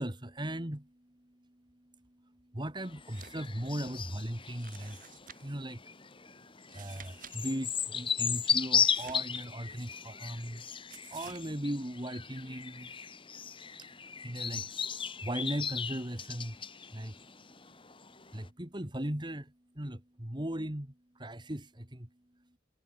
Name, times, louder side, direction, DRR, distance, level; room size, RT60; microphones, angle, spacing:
voice 1, 0.0-22.6, right 1 dB, 25° right, 2.3 m, -39 dB
sound 1, 2.8-18.5, left 7 dB, 30° left, 2.3 m, -36 dB
sound 2, 3.0-3.5 3.8-3.9 4.6-5.6 6.6-7.4 7.6-7.7 8.7-9.9 10.9-11.5, right 8 dB, 45° right, 3.9 m, -52 dB
head